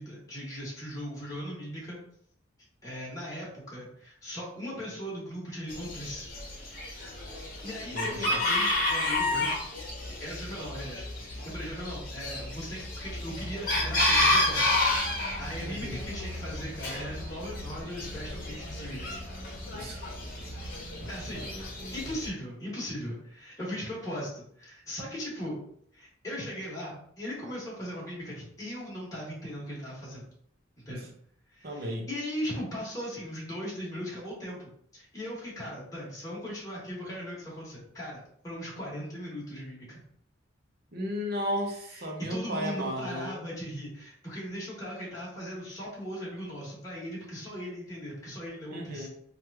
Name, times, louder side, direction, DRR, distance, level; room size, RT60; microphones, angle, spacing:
voice 1, 0.0-2.0 2.8-6.3 7.3-9.5 10.1-19.2 21.1-21.5 21.9-25.5 25.9-30.3 30.8-31.1 31.5-40.0 41.9-49.1, equal, 15° left, -7 dB, 1.2 m, -38 dB
Chicken rooster, 5.7-22.3, left 2 dB, 45° left, 1.0 m, -31 dB
voice 2, 7.9-8.5 15.6-16.0 19.7-20.0 21.0-21.9 30.9-31.1 31.6-32.1 40.9-43.4 48.7-49.1, equal, 50° right, 0 dB, 0.7 m, -35 dB
3.1 x 2.4 x 3.3 m, 0.66 s
head